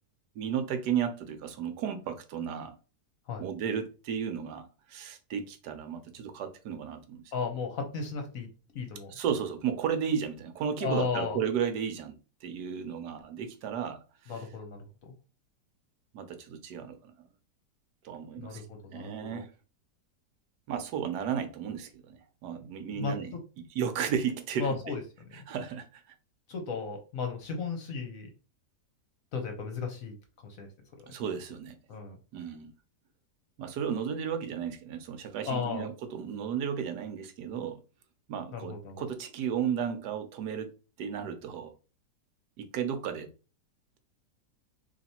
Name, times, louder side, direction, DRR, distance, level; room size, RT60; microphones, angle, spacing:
voice 1, 0.4-2.7 3.4-7.2 9.1-14.3 16.1-17.1 18.0-18.7 18.9-19.5 20.7-24.8 25.3-26.0 31.1-31.8 32.3-32.7 33.6-37.8 38.3-40.7 41.0-41.7 42.6-43.3, right 8 dB, 75° right, 1.2 m, -34 dB
voice 2, 7.3-8.5 8.7-9.1 10.8-11.4 14.3-15.1 18.4-19.4 22.9-23.1 24.6-25.0 26.5-28.3 29.3-30.1 30.4-30.7 31.9-32.2 35.4-35.9 38.5-39.0, left 5 dB, 60° left, 1.1 m, -35 dB
3.2 x 2.9 x 4.1 m
omnidirectional pair, 1.8 m